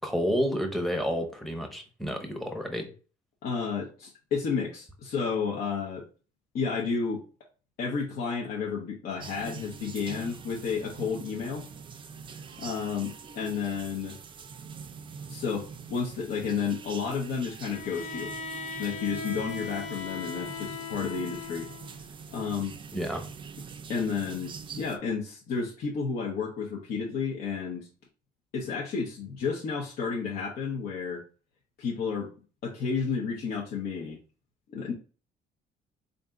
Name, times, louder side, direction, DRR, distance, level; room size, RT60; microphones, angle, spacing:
voice 1, 0.0-2.9 22.9-23.3, equal, ahead, 5 dB, 0.9 m, -30 dB
voice 2, 3.4-6.0 6.5-7.2 7.8-11.7 12.6-14.2 15.3-18.3 18.8-21.7 22.3-22.7 23.9-27.9 28.5-31.2 31.8-32.3 32.6-34.2 34.7-34.9, left 5 dB, 65° left, -2 dB, 0.9 m, -31 dB
sound 1, 9.2-25.0, right 6 dB, 30° right, 0.4 m, -44 dB
Bowed string instrument, 17.6-21.9, left 5 dB, 45° left, 0.6 m, -38 dB
3.5 x 2.6 x 3.7 m, 0.37 s
cardioid pair, 110°, 17 cm